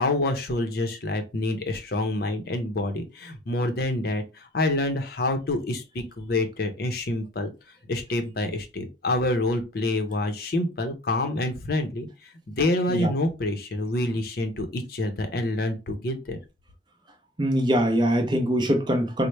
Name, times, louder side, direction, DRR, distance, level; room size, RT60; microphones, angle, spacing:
voice 1, 0.0-7.5 7.9-12.1 12.5-16.4, left 2 dB, 50° left, 0.6 m, -27 dB
voice 2, 17.4-19.3, equal, 25° right, 0.5 m, -22 dB
4.2 x 2.0 x 3.2 m
head